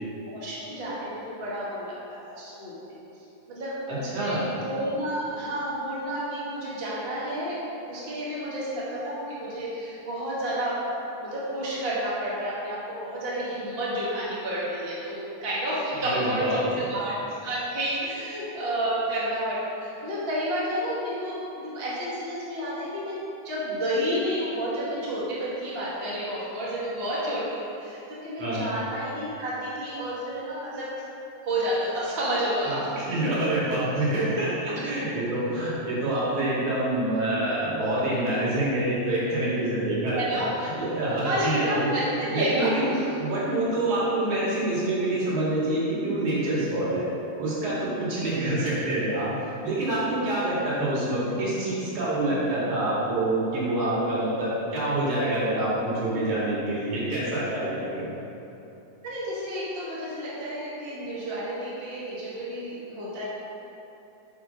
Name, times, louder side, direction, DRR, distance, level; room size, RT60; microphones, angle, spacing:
voice 1, 0.3-2.8 3.5-7.6 7.9-10.8 11.2-23.2 23.4-30.9 31.4-32.8 40.2-40.5 41.2-43.0 50.6-50.7 59.0-63.2, right 1 dB, 20° right, -8 dB, 2.0 m, -30 dB
voice 2, 3.9-4.4 16.0-16.8 28.4-28.7 32.6-41.9 42.3-47.1 47.4-58.2, right 1 dB, 80° right, -8 dB, 4.0 m, -26 dB
9.9 x 5.3 x 6.4 m, 2.9 s
omnidirectional pair, 3.3 m